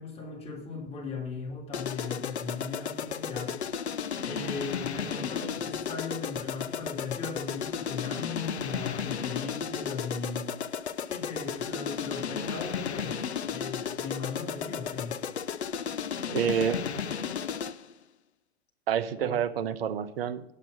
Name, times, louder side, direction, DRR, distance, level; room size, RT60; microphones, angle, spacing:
voice 1, 0.0-3.6 4.2-10.5 11.0-15.2 19.2-19.4, left 4 dB, 20° left, -3 dB, 3.3 m, -38 dB
sound 1, 1.7-17.9, left 7 dB, 85° left, 0.5 m, -34 dB
voice 2, 16.3-17.0 18.9-20.4, right 8 dB, 65° right, 12 dB, 0.8 m, -28 dB
9.0 x 7.3 x 6.2 m, 0.78 s
figure-of-eight pair, 90°, 32 cm